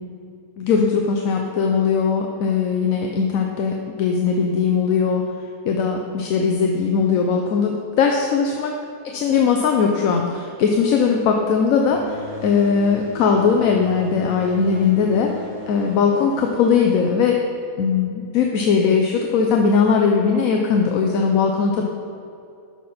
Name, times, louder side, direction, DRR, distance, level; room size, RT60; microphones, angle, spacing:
voice 1, 0.6-5.2 5.6-8.8 9.1-15.3 15.7-17.4 17.8-21.8, left 5 dB, 75° left, 2 dB, 1.1 m, -19 dB
sound 1, 11.9-17.9, left 2 dB, 10° right, 2.1 m, -38 dB
12.0 x 5.9 x 4.3 m, 2.5 s
omnidirectional pair, 1.5 m